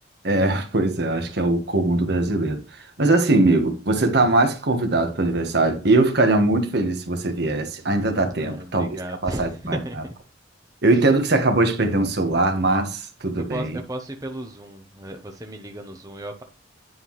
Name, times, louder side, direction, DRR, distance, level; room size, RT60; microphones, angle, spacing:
voice 1, 0.2-2.6 3.0-9.8 10.8-13.8, right 2 dB, 60° right, 1.4 m, -21 dB
voice 2, 8.4-10.1 13.5-16.4, right 1 dB, 20° right, 0.7 m, -35 dB
9.4 x 5.7 x 3.1 m
head